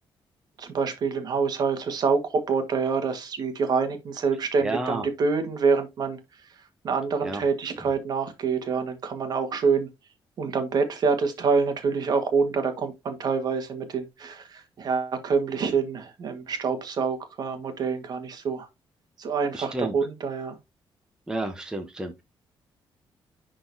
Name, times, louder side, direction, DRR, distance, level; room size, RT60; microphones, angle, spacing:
voice 1, 0.6-6.2 6.8-9.9 10.4-18.7 19.2-20.6, right 5 dB, 50° right, 1.4 m, -26 dB
voice 2, 4.6-5.1 7.2-7.4 19.5-20.0 21.3-22.2, right 2 dB, 10° right, 0.8 m, -31 dB
10.5 x 3.8 x 2.6 m
wide cardioid pair, 175°, 9 cm